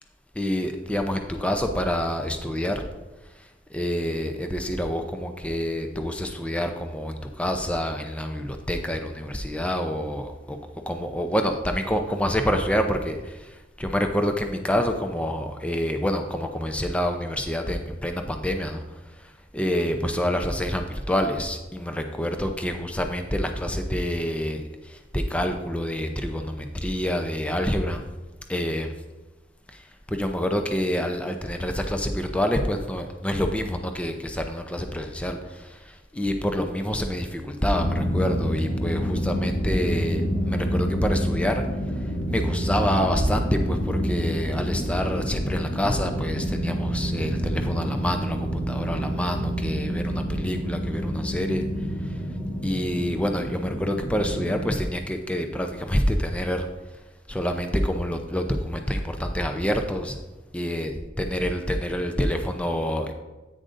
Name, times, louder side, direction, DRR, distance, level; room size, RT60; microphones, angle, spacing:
voice 1, 0.4-2.9 3.4-10.6 10.9-18.8 19.2-28.0 28.5-28.9 29.7-41.6 42.3-51.7 52.0-52.2 52.6-56.7 57.3-60.2 60.5-63.1, equal, 5° left, 5 dB, 0.6 m, -27 dB
sound 1, 37.7-54.7, equal, 40° left, 2.9 m, -28 dB
10.0 x 9.1 x 2.6 m, 1.1 s
head